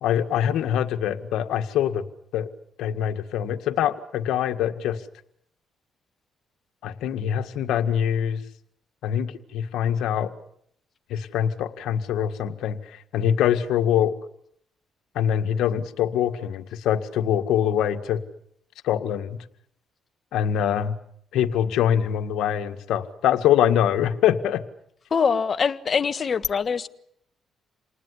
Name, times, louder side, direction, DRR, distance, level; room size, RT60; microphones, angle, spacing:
voice 1, 0.0-2.0 2.3-2.5 2.8-5.0 6.8-8.4 9.0-10.3 11.1-14.1 15.2-18.2 18.8-19.4 20.3-20.9 21.3-24.6, left 9 dB, 85° left, 1.8 m, -24 dB
voice 2, 25.1-26.9, left 6 dB, 45° left, 1.5 m, -23 dB
28.5 x 19.5 x 9.9 m
cardioid pair, 90°, 0 cm